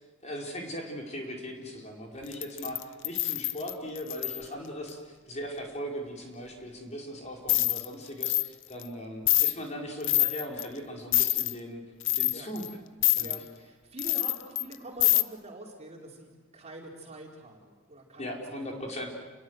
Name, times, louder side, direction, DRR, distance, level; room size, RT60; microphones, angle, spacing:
voice 1, 0.2-11.8 12.1-12.6 13.2-13.4 18.2-19.1, equal, 35° left, 0 dB, 4.7 m, -39 dB
sound 1, 2.3-4.4 7.5-7.8 8.2-8.5 8.8-8.9 9.3-9.5 10.0-10.6 11.1-11.5 12.0-12.7 13.0-13.4 14.0-14.7 15.0-15.2, left 16 dB, 65° left, 0.9 m, -25 dB
voice 2, 13.2-18.9, right 2 dB, 30° right, 0 dB, 4.6 m, -45 dB
29.5 x 22.0 x 8.0 m, 1.3 s
head